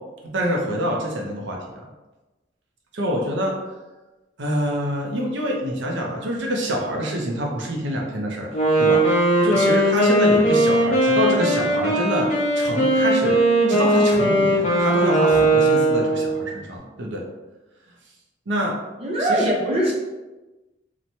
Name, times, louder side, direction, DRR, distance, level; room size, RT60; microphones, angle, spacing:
voice 1, 0.3-1.8 2.9-3.5 4.4-8.5 8.8-9.0 9.4-12.3 12.6-13.4 13.7-17.2 18.5-18.7 19.2-19.4, equal, 75° right, 0 dB, 0.6 m, -26 dB
Wind instrument woodwind instrument, 8.5-16.4, right 1 dB, 35° left, 0.6 m, -19 dB
voice 2, 19.0-19.9, right 1 dB, 30° right, -3 dB, 0.7 m, -22 dB
2.9 x 2.1 x 2.7 m, 1.1 s
head